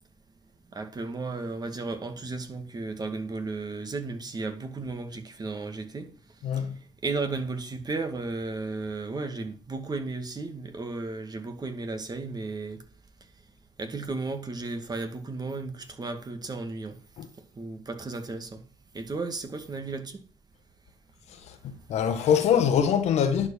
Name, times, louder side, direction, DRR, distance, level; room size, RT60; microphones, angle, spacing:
voice 1, 0.7-6.1 6.6-6.7 7.0-12.8 13.8-17.0 17.4-18.6 18.9-20.2, right 3 dB, 35° right, 2.1 m, -34 dB
voice 2, 6.4-6.8 17.2-17.3 21.3-23.5, left 8 dB, 65° left, 1.5 m, -24 dB
11.0 x 5.3 x 7.2 m
hypercardioid pair, 50°, 12 cm